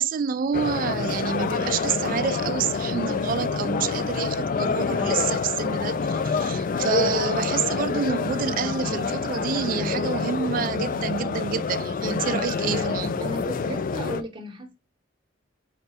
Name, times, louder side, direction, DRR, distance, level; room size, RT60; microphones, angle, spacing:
voice 1, 0.0-13.3, right 7 dB, 45° right, 0.3 m, -28 dB
sound 1, 0.5-14.2, left 5 dB, 45° left, 0.3 m, -27 dB
voice 2, 13.2-14.8, right 1 dB, 25° right, 0.9 m, -35 dB
4.9 x 3.3 x 2.7 m
head